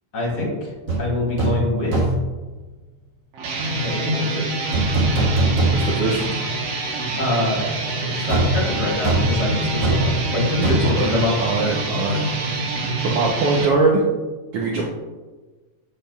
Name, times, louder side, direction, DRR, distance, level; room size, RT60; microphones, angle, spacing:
voice 1, 0.1-0.7 1.0-2.1 3.8-4.4 7.1-11.3, left 2 dB, 45° left, -2 dB, 1.5 m, -25 dB
sound 1, 0.9-1.0 1.4-1.6 1.9-2.3 4.7-6.2 6.5-6.6 8.3-12.0 12.2-12.4, right 2 dB, 45° right, 1.6 m, -22 dB
sound 2, 3.3-13.7, right 2 dB, 65° right, 1.8 m, -26 dB
voice 2, 5.7-6.4 10.8-12.2 13.0-14.0 14.5-14.9, right 3 dB, 85° right, -2 dB, 1.3 m, -22 dB
8.2 x 5.9 x 2.3 m, 1.2 s
omnidirectional pair, 3.6 m